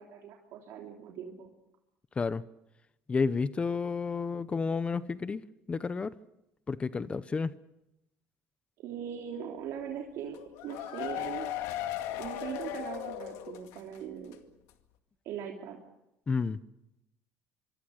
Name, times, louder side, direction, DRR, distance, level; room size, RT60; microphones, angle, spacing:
voice 1, 0.0-1.5 8.8-10.4 10.6-11.5 12.2-14.4 15.2-15.8, right 8 dB, 70° right, 3.2 m, -40 dB
voice 2, 3.1-6.1 6.7-7.5 16.3-16.6, left 4 dB, 25° left, 0.8 m, -31 dB
sound 1, 10.3-14.0 14.3-14.4 14.7-14.8, left 12 dB, 80° left, 2.2 m, -37 dB
25.0 x 24.5 x 6.5 m
cardioid pair, 120°, 5 cm